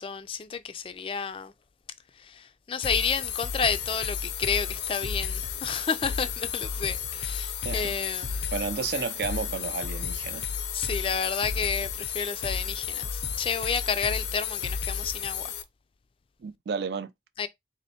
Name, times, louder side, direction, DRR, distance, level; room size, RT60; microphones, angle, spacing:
voice 1, 0.0-1.5 2.2-8.5 10.7-15.5 17.4-17.5, left 6 dB, 30° left, 0.3 m, -31 dB
sound 1, 2.8-15.6, left 7 dB, 80° left, 0.5 m, -32 dB
voice 2, 8.5-10.4 16.4-17.1, right 5 dB, 65° right, 0.4 m, -32 dB
4.3 x 3.0 x 2.8 m
head